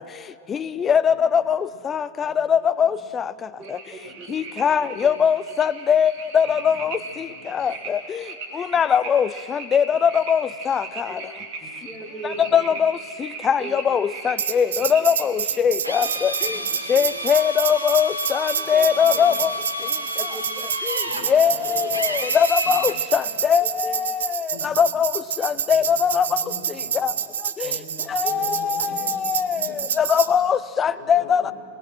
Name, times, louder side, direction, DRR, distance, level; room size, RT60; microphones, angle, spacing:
voice 1, 0.5-1.6 1.8-3.2 4.3-7.0 7.5-8.2 8.6-11.1 12.4-13.0 13.4-16.3 16.9-19.5 21.3-23.2 23.5-25.1 25.4-26.3 27.0-27.1 27.6-27.7 28.1-29.7 30.0-31.5, left 7 dB, 25° left, 0.6 m, -21 dB
voice 2, 1.0-1.8 2.8-3.3 4.0-4.3 4.6-5.2 6.4-7.7 8.7-8.9 10.5-10.6 10.8-10.9 11.6-11.7 12.3-12.8 14.8-14.9 15.6-16.0 16.4-16.6 19.0-19.5 19.8-20.0 21.0-22.0 22.6-22.8 23.3-23.4 24.5-24.9 25.7-27.3 27.6-29.2 29.5-29.8 30.3-30.4 31.0-31.5, left 1 dB, 55° left, 5.8 m, -44 dB
voice 3, 3.6-4.3 4.6-4.7 5.0-5.1 7.6-8.0 10.9-11.4 11.9-12.8 13.6-13.8 14.7-14.8 16.0-16.1 16.9-17.1 18.5-18.9 19.1-19.2 20.0-20.4 20.9-21.2 21.6-21.9 23.8-24.0 28.2-28.4 28.7-28.9, right 3 dB, 15° right, 5.5 m, -39 dB
sound 1, 3.6-15.6, right 3 dB, 40° right, 3.1 m, -38 dB
Tambourine, 14.4-30.3, right 8 dB, 65° right, 0.7 m, -28 dB
Drill, 15.8-23.0, equal, 85° right, 1.5 m, -30 dB
21.0 x 20.5 x 6.3 m
figure-of-eight pair, 90°, 0 cm